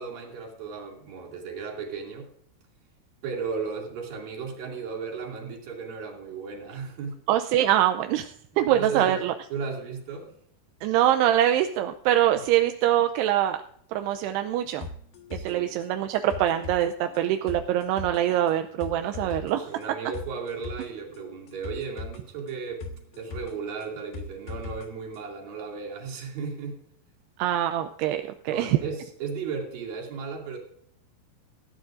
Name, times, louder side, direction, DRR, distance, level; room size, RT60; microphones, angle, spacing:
voice 1, 0.0-2.3 3.2-7.2 8.7-9.2 9.5-10.3 15.3-15.7 19.0-26.8 28.5-30.6, right 5 dB, 60° right, 0 dB, 4.2 m, -35 dB
voice 2, 7.3-9.3 10.8-13.6 13.9-14.9 15.3-19.6 27.4-28.8, right 12 dB, 85° right, 7 dB, 2.7 m, -24 dB
sound 1, 14.8-24.9 25.1-25.2, left 3 dB, 65° left, 2.9 m, -40 dB
19.0 x 15.0 x 2.5 m, 0.66 s
omnidirectional pair, 4.7 m